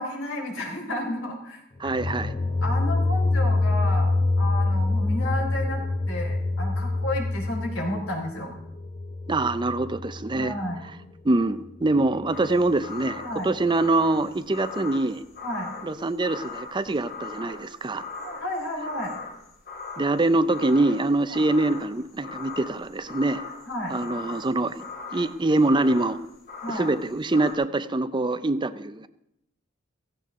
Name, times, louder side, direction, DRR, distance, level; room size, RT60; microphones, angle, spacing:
voice 1, 0.0-1.6 2.6-8.5 10.3-10.8 13.2-13.5 15.4-15.7 18.2-19.1 21.3-21.4 23.7-24.0 26.6-26.9, left 1 dB, 80° left, 1 dB, 3.9 m, -32 dB
sound 1, 1.8-10.7, left 2 dB, 30° left, 0.6 m, -26 dB
voice 2, 1.8-2.4 9.3-10.5 11.2-15.2 15.8-18.0 20.0-23.4 23.9-24.8 25.1-26.2 26.7-29.1, right 2 dB, 25° right, 13 dB, 0.5 m, -24 dB
sound 2, 12.3-27.5, left 4 dB, 50° left, 2.7 m, -40 dB
16.5 x 15.5 x 3.7 m, 0.80 s
head